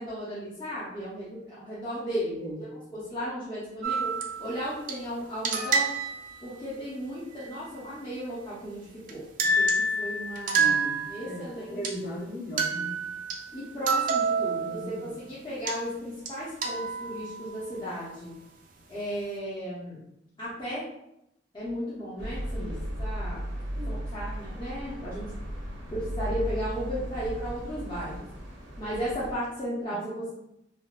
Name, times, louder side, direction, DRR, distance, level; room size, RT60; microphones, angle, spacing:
voice 1, 0.0-2.4 2.9-4.1 4.4-5.9 6.4-10.7 11.1-11.8 13.5-18.3 18.9-20.0 20.4-20.8 21.5-22.7 23.0-23.5 23.9-25.3 25.9-28.3 28.8-30.3, equal, 25° left, -10 dB, 0.7 m, -35 dB
sound 1, 3.8-4.9 5.4-6.4 9.1-9.2 9.4-11.4 11.8-11.9 12.6-15.0 15.7-15.8 16.3-16.4 16.6-17.7, right 3 dB, 50° right, 0.4 m, -28 dB
voice 2, 10.5-13.0 14.6-15.2 22.6-22.9 23.7-24.0 29.9-30.0, equal, 55° left, -5 dB, 1.0 m, -38 dB
sound 2, 22.2-29.3, equal, 85° right, 0.8 m, -36 dB
3.6 x 2.2 x 2.3 m, 0.83 s
head